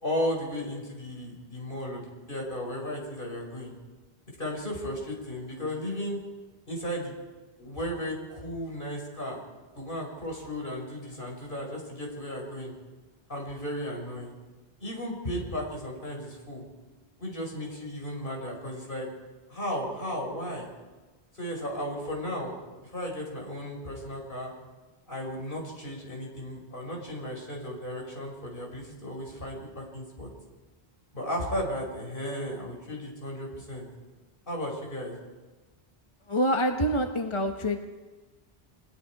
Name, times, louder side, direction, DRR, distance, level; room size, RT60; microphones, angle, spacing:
voice 1, 0.0-3.7 4.4-6.2 6.7-7.1 7.6-9.4 9.8-12.7 13.3-14.3 14.8-16.6 17.2-19.1 19.5-20.7 21.3-22.5 22.8-24.5 25.1-30.3 31.1-33.9 34.5-35.2, equal, 55° left, -1 dB, 5.6 m, -35 dB
voice 2, 36.3-37.8, equal, 30° left, 4 dB, 1.3 m, -26 dB
30.0 x 21.5 x 4.8 m, 1.3 s
omnidirectional pair, 1.0 m